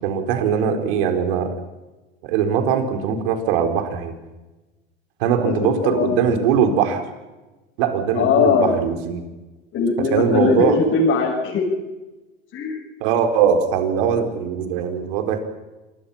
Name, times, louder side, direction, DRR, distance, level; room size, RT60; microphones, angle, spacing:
voice 1, 0.0-1.6 2.2-4.1 5.2-7.1 7.8-9.2 10.1-10.8 13.0-15.4, right 7 dB, 70° right, 6 dB, 4.6 m, -21 dB
voice 2, 5.4-6.4 8.1-8.8 9.7-11.7 12.5-12.8, left 5 dB, 45° left, -2 dB, 6.8 m, -20 dB
27.5 x 22.0 x 5.9 m, 1.1 s
hypercardioid pair, 95°, 30 cm